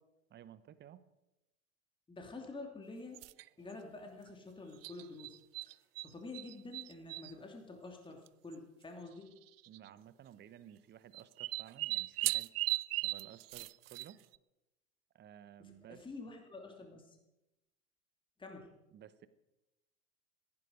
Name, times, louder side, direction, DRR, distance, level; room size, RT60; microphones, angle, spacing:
voice 1, 0.3-1.1 9.7-12.5 13.0-14.2 15.1-16.1 18.9-19.3, right 10 dB, 25° right, 15 dB, 1.1 m, -55 dB
voice 2, 2.1-3.2 3.6-5.4 6.0-9.4 15.6-17.2 18.4-18.7, left 3 dB, 10° left, 3 dB, 2.8 m, -48 dB
sound 1, 3.1-3.5 4.8-6.1 6.3-7.3 8.3-8.4 8.5-8.6 9.6-9.9 11.1-14.3, right 20 dB, 45° right, 0.4 m, -37 dB
17.0 x 15.5 x 5.1 m, 0.94 s
figure-of-eight pair, 85°, 42 cm